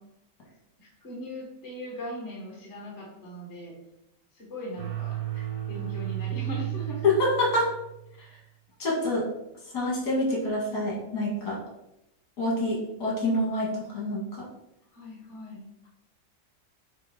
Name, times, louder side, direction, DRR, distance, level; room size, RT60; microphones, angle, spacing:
voice 1, 0.8-3.7 4.3-5.2 5.7-7.0 14.9-15.7, equal, 40° left, -3 dB, 1.8 m, -39 dB
sound 1, 4.8-8.2, right 14 dB, 80° right, 1.8 m, -34 dB
voice 2, 7.0-7.7 8.8-9.3 9.7-11.6 12.4-14.2, left 1 dB, 65° left, -3 dB, 2.3 m, -26 dB
6.7 x 2.9 x 5.0 m, 0.84 s
omnidirectional pair, 1.9 m